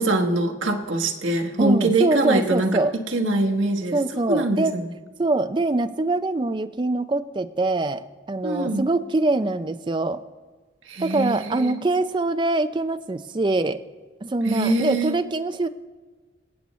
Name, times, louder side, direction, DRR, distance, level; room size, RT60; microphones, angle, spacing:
voice 1, 0.0-3.9 4.3-4.9 8.4-8.9 10.9-11.8 14.4-15.1, right 2 dB, 85° right, 3 dB, 1.2 m, -23 dB
voice 2, 1.6-2.9 3.9-4.8 5.2-10.2 11.0-13.8 14.2-15.7, right 2 dB, 25° right, 10 dB, 0.4 m, -24 dB
23.5 x 8.3 x 3.1 m, 1.4 s
head